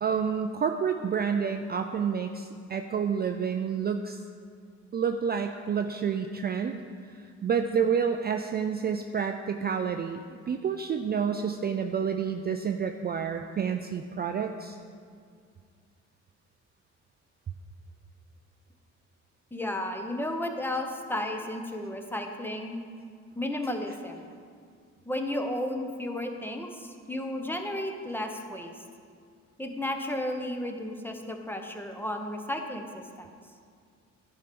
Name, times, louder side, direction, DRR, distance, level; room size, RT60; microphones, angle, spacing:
voice 1, 0.0-4.2 4.9-6.8 7.4-14.8, right 7 dB, 35° right, 5 dB, 0.4 m, -29 dB
voice 2, 19.5-22.8 23.4-24.2 25.1-28.7 29.6-32.9 33.2-33.3, left 1 dB, 5° left, 4 dB, 0.8 m, -33 dB
10.5 x 4.5 x 5.2 m, 2.2 s
cardioid pair, 90°, 30 cm